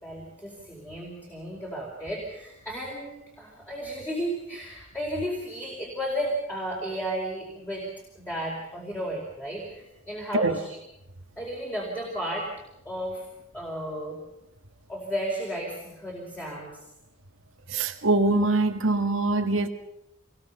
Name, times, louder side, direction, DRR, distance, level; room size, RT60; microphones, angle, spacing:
voice 1, 0.0-7.8 8.1-10.8 11.4-12.5 12.8-13.2 13.5-14.2 14.9-16.8, equal, 10° left, 4.8 m, -33 dB
voice 2, 17.7-19.7, right 2 dB, 80° right, 2.0 m, -23 dB
27.0 x 21.5 x 5.7 m
head